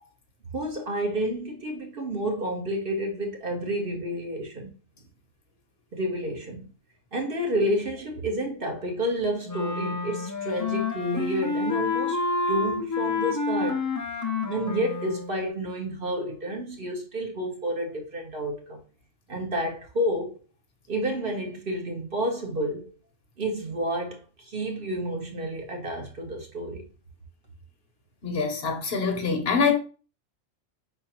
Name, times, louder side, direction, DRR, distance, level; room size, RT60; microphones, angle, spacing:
voice 1, 0.5-4.7 5.9-6.7 7.1-13.8 14.4-18.8 19.3-20.3 20.9-22.9 23.4-26.9, equal, 50° right, 1.2 m, -30 dB
Wind instrument woodwind instrument, 9.4-15.3, left 4 dB, 25° left, 0.4 m, -29 dB
voice 2, 28.2-29.8, left 5 dB, 60° left, 1.0 m, -24 dB
4.8 x 3.8 x 2.8 m
omnidirectional pair, 1.3 m